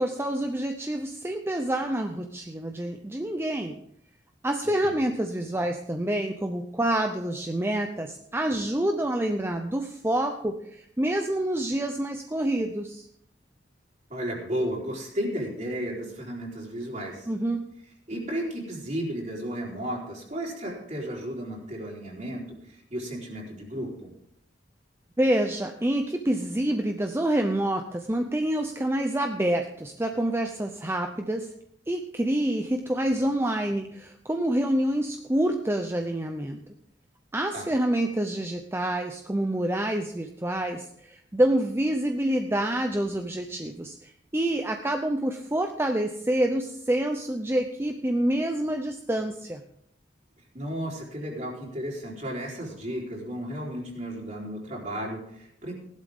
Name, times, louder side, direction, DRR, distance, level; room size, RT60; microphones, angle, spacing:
voice 1, 0.0-3.8 4.4-13.1 17.3-17.7 25.2-31.5 31.9-36.6 37.3-49.6, right 1 dB, 15° right, 5 dB, 0.6 m, -27 dB
voice 2, 14.1-17.3 18.1-24.1 37.5-37.7 50.5-55.7, equal, 40° right, -3 dB, 4.1 m, -33 dB
16.0 x 11.5 x 3.6 m, 0.70 s
head